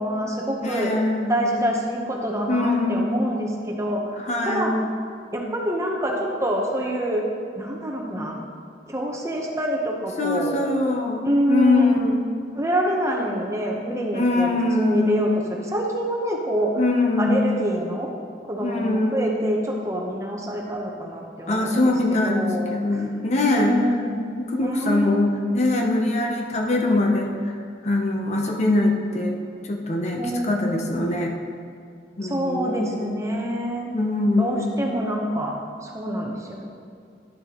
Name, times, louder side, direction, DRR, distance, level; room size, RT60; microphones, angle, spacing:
voice 1, 0.0-0.9 1.3-4.0 4.4-4.7 5.3-7.2 7.6-8.5 8.9-10.6 11.2-12.0 12.5-14.5 14.8-16.7 17.2-18.1 18.4-23.0 23.5-24.3 24.6-25.2 30.2-30.8 32.2-33.9 34.4-35.5 35.8-36.7, equal, 15° right, -1 dB, 0.9 m, -26 dB
voice 2, 0.6-1.3 2.5-3.1 4.2-4.9 10.2-12.2 14.1-15.3 16.8-17.5 18.6-19.4 21.5-23.8 24.4-27.6 27.8-31.3 32.2-33.2 33.9-34.7, left 2 dB, 40° left, 1 dB, 0.7 m, -23 dB
11.0 x 6.6 x 3.0 m, 2.2 s
head